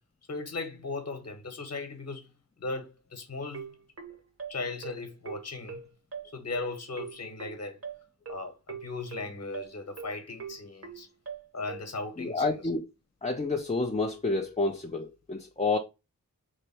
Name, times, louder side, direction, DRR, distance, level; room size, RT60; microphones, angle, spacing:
voice 1, 0.3-2.3 2.6-3.8 4.5-5.8 6.2-7.8 8.3-11.1 11.5-12.6, left 3 dB, 45° left, 1.2 m, -37 dB
sound 1, 3.5-11.9, right 6 dB, 40° right, 1.0 m, -41 dB
voice 2, 12.2-12.8 13.2-15.8, left 3 dB, 20° left, 0.6 m, -29 dB
3.2 x 2.6 x 4.4 m
cardioid pair, 50°, 36 cm